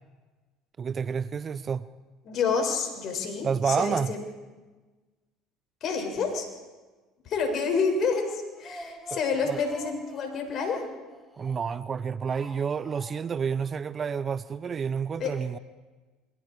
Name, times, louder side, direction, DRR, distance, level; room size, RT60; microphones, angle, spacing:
voice 1, 0.8-1.8 3.4-4.1 9.4-9.6 11.4-15.6, right 6 dB, 35° right, 0.8 m, -29 dB
voice 2, 2.2-4.2 5.8-6.5 7.3-10.9 15.2-15.3, left 5 dB, 50° left, 6.8 m, -28 dB
Speech, 8.3-11.8 12.3-13.4 13.7-13.8 14.1-14.2, right 1 dB, ahead, 6.9 m, -46 dB
28.5 x 24.0 x 5.0 m
hypercardioid pair, 80°, 0 cm